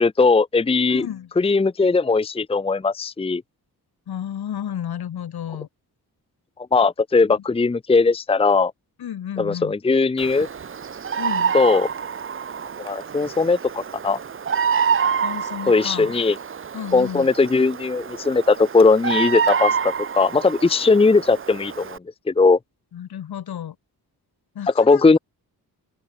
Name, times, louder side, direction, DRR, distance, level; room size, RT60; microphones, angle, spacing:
voice 1, 0.0-1.1 1.4-3.4 6.7-8.7 9.4-10.5 11.5-11.9 12.8-14.2 15.7-16.4 16.9-22.0 22.3-22.6 24.8-25.2, left 4 dB, 15° left, 0.8 m, -18 dB
voice 2, 0.9-1.3 4.1-5.7 9.0-9.7 11.2-11.5 15.2-16.1 16.7-17.3 22.9-23.8 24.5-25.0, left 10 dB, 80° left, 7.9 m, -32 dB
Bird vocalization bird call bird song, 10.2-22.0, right 6 dB, 35° right, 1.1 m, -27 dB
open air
wide cardioid pair, 165°, 38 cm